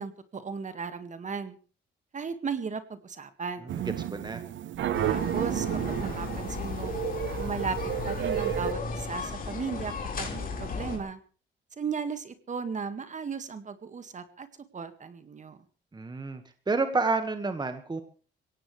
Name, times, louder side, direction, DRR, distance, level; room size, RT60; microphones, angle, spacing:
voice 1, 0.0-1.6 2.1-3.7 5.1-7.0 7.3-7.8 8.0-11.2 11.8-14.5 14.7-15.6, right 5 dB, 35° right, 10 dB, 1.9 m, -36 dB
sound 1, 3.7-8.7, right 12 dB, 65° right, 1.1 m, -32 dB
voice 2, 4.1-4.4 15.9-16.4 16.7-18.0, right 3 dB, 20° right, 9 dB, 1.7 m, -29 dB
sound 2, 4.9-11.0, left 4 dB, 45° left, 4.8 m, -35 dB
22.0 x 17.5 x 3.3 m, 0.38 s
cardioid pair, 105°, 20 cm